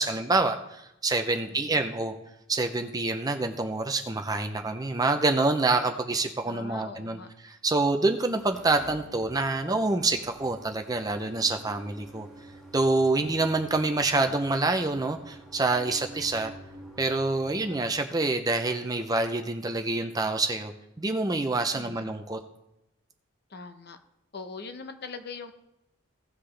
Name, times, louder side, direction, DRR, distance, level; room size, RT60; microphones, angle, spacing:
voice 1, 0.0-2.1 2.5-7.2 7.4-12.3 12.7-16.5 17.0-20.7 21.0-22.4, right 3 dB, 15° right, 5 dB, 0.5 m, -26 dB
voice 2, 6.4-7.3 21.7-22.1 23.5-24.0 24.3-25.5, left 4 dB, 50° left, 7 dB, 0.8 m, -41 dB
sound 1, 8.0-18.3, right 1 dB, ahead, 2.3 m, -49 dB
16.5 x 5.8 x 3.3 m, 0.87 s
head